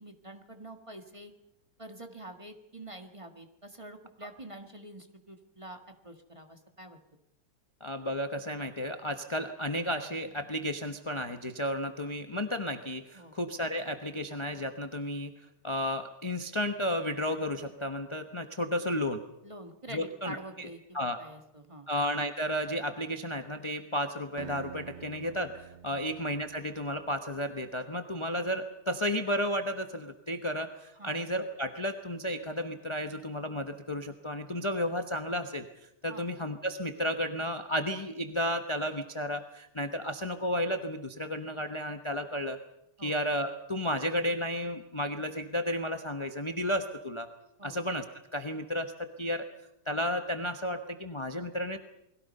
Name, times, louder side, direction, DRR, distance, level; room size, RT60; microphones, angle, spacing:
voice 1, 0.0-1.3 1.8-7.0 13.1-13.3 19.4-21.9 25.9-26.1 31.0-31.2 36.1-36.2 43.0-43.2 47.6-47.8, right 1 dB, 15° right, 5 dB, 1.6 m, -46 dB
voice 2, 7.8-15.3 15.6-19.2 19.9-20.7 20.9-21.2 21.9-42.6 43.0-47.3 47.6-48.0 48.3-49.5 49.9-51.8, equal, 25° left, 6 dB, 0.6 m, -33 dB
Acoustic guitar, 24.4-27.4, right 10 dB, 80° right, 2.0 m, -48 dB
29.0 x 21.5 x 5.5 m, 0.83 s
omnidirectional pair, 2.4 m